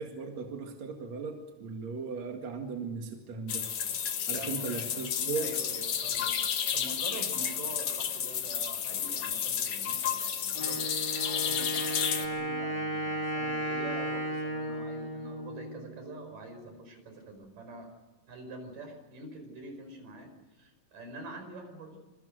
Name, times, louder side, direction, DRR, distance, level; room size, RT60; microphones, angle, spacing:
voice 1, 0.0-3.7 4.3-5.5, right 5 dB, 55° right, 3 dB, 3.1 m, -37 dB
sound 1, 3.5-12.3, left 8 dB, 60° left, 2.9 m, -32 dB
voice 2, 4.3-4.7 5.3-6.4 6.7-10.9 11.2-17.9 18.3-22.0, right 2 dB, 75° right, 6 dB, 6.8 m, -45 dB
Wind instrument woodwind instrument, 10.5-16.3, equal, 30° left, 4.3 m, -35 dB
26.5 x 24.0 x 6.5 m, 1.2 s
omnidirectional pair, 3.8 m